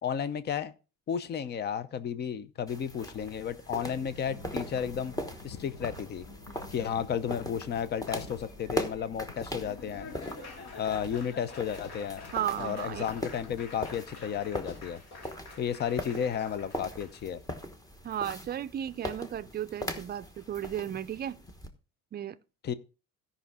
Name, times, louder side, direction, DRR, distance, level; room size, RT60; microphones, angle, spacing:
voice 1, 0.0-0.7 1.1-5.1 5.4-6.3 6.7-10.1 10.8-12.2 12.6-15.0 15.6-17.4 22.6-22.7, left 8 dB, 35° left, 0.7 m, -33 dB
sound 1, 2.7-21.7, left 1 dB, 10° left, 1.2 m, -41 dB
Thunder / Rain, 3.9-14.5, left 3 dB, 80° left, 3.3 m, -50 dB
Laughter / Applause, 9.3-17.2, left 3 dB, 55° left, 2.8 m, -48 dB
voice 2, 12.3-13.0 18.0-21.4 22.1-22.4, right 10 dB, 35° right, 0.5 m, -34 dB
16.5 x 5.6 x 3.6 m
cardioid pair, 155°, 30 cm